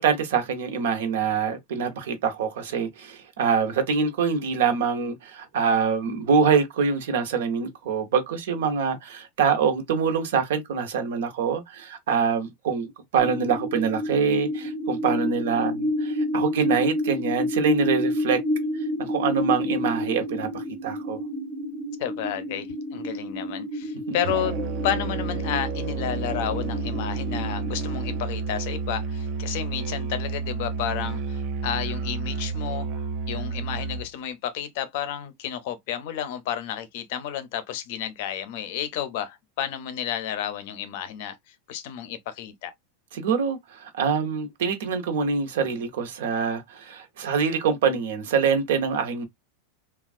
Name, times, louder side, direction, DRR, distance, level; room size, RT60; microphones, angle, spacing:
voice 1, 0.0-18.4 19.0-21.2 24.1-24.2 43.1-49.3, right 6 dB, 75° right, 0.9 m, -25 dB
sound 1, 13.2-28.2, left 1 dB, 25° left, 1.0 m, -30 dB
voice 2, 22.0-32.9 33.3-42.7, left 10 dB, 55° left, 0.6 m, -31 dB
Musical instrument, 24.2-34.1, right 4 dB, 40° right, 0.3 m, -30 dB
3.4 x 2.3 x 2.3 m
supercardioid pair, 165°, 0 cm